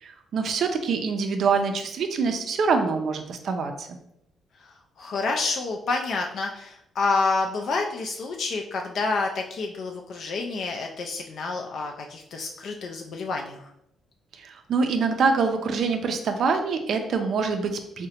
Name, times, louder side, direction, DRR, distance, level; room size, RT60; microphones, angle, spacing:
voice 1, 0.0-3.9 14.4-18.1, right 5 dB, 60° right, 6 dB, 0.4 m, -25 dB
voice 2, 5.0-13.7, left 3 dB, 60° left, 2 dB, 0.3 m, -28 dB
3.7 x 2.1 x 2.8 m, 0.79 s
cardioid pair, 90°, 0 cm